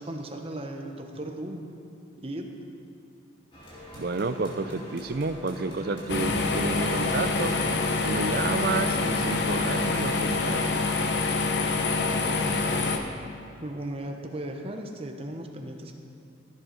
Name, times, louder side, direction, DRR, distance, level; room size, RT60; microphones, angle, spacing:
voice 1, 0.0-1.7 2.2-2.5 11.9-12.9 13.6-15.9, right 1 dB, 30° right, 3 dB, 0.9 m, -37 dB
sound 1, 3.5-10.6, equal, 25° left, 2.7 m, -44 dB
voice 2, 3.9-7.6 8.0-10.8, right 3 dB, 55° right, 11 dB, 0.5 m, -30 dB
sound 2, 6.1-13.0, left 3 dB, 60° left, 0.9 m, -26 dB
15.5 x 7.9 x 5.2 m, 2.7 s
head